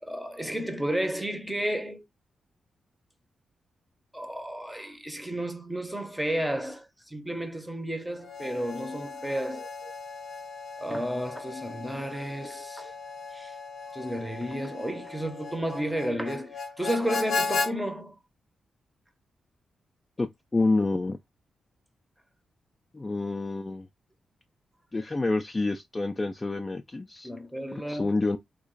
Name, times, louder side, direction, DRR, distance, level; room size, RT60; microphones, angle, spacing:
voice 1, 0.0-2.0 4.1-9.9 10.8-12.9 13.3-13.5 13.9-18.2 27.2-28.2, right 1 dB, 5° right, 0.7 m, -32 dB
Harmonica, 8.2-17.7, left 4 dB, 80° left, 0.6 m, -36 dB
voice 2, 20.2-21.2 22.9-23.9 24.9-27.3 27.7-28.4, left 3 dB, 20° left, 0.4 m, -28 dB
3.0 x 2.4 x 3.8 m
wide cardioid pair, 135°, 0 cm